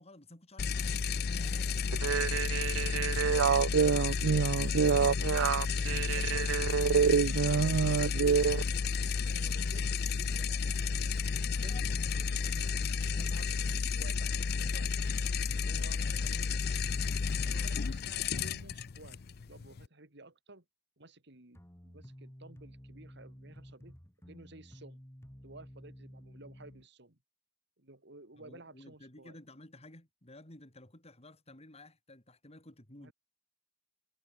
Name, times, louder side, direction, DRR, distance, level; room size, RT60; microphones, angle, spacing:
voice 1, 0.0-3.8 4.6-5.6 7.2-8.0 11.7-11.8 16.0-16.1 17.5-17.7 28.3-33.1, left 1 dB, 35° left, 4.6 m, -54 dB
sound 1, 0.6-19.9, left 5 dB, 55° left, 0.5 m, -32 dB
sound 2, 1.9-8.6, right 7 dB, 85° right, 0.4 m, -27 dB
voice 2, 5.8-6.6 7.5-8.7 9.2-10.8 11.2-12.7 13.0-15.1 15.6-16.8 17.4-19.2 19.5-20.6 21.0-24.0 24.3-25.0 25.4-27.2 27.8-29.4 33.0-33.1, right 2 dB, 65° right, 3.5 m, -54 dB
sound 3, 21.5-26.9, equal, 15° left, 3.6 m, -52 dB
head